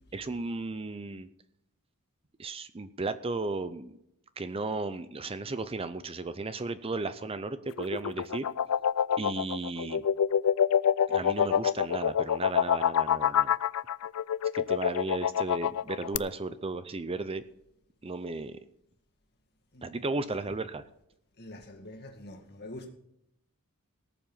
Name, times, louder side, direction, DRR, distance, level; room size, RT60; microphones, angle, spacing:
voice 1, 0.1-1.3 2.4-4.0 4.4-8.5 9.2-10.0 11.1-13.5 14.5-17.4 18.0-18.6 19.8-20.8, right 3 dB, 25° right, 0.6 m, -35 dB
sound 1, 7.7-16.2, left 8 dB, 70° left, 0.4 m, -26 dB
voice 2, 21.4-22.9, left 1 dB, 50° left, 2.1 m, -45 dB
18.5 x 7.4 x 5.6 m
head